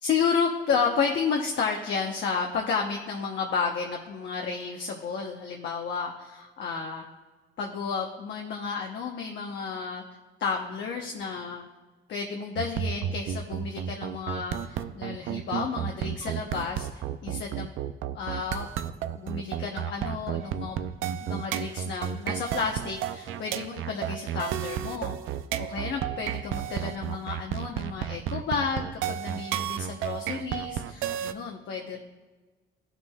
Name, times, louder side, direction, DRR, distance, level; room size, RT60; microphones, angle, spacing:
voice 1, 0.0-7.0 7.6-10.0 10.4-11.6 12.1-17.7 18.1-18.7 19.2-20.8 21.2-32.0, left 5 dB, 65° left, 0 dB, 0.9 m, -31 dB
sound 1, 12.6-31.3, right 10 dB, 85° right, 0.4 m, -32 dB
14.0 x 5.9 x 2.3 m, 1.3 s
cardioid pair, 90°, 20 cm